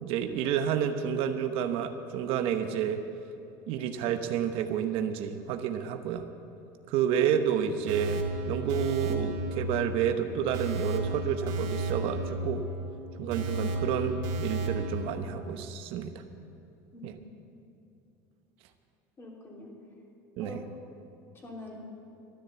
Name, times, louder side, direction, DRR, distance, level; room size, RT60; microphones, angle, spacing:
voice 1, 0.0-3.0 3.7-6.2 6.9-12.6 13.2-16.2 17.0-17.1 20.4-20.6, right 8 dB, 65° right, 8 dB, 0.9 m, -30 dB
sound 1, 7.9-15.1, right 2 dB, 90° right, 1.6 m, -33 dB
voice 2, 16.9-17.2 17.5-17.6 19.2-19.7 20.4-20.6 21.3-21.8, left 2 dB, 25° left, -2 dB, 3.2 m, -45 dB
13.0 x 10.0 x 8.2 m, 2.8 s
cardioid pair, 130°, 10 cm